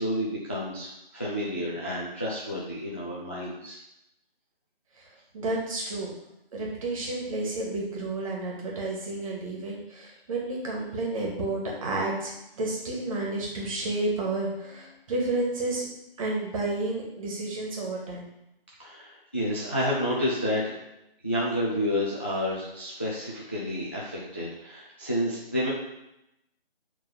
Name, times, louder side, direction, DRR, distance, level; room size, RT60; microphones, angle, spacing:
voice 1, 0.0-3.8 18.8-20.7 21.2-25.7, equal, 15° left, -5 dB, 0.4 m, -30 dB
voice 2, 5.3-6.1 6.5-15.9 16.2-18.3, right 2 dB, 35° right, -2 dB, 2.1 m, -31 dB
7.1 x 3.8 x 5.4 m, 0.87 s
figure-of-eight pair, 145°, 30 cm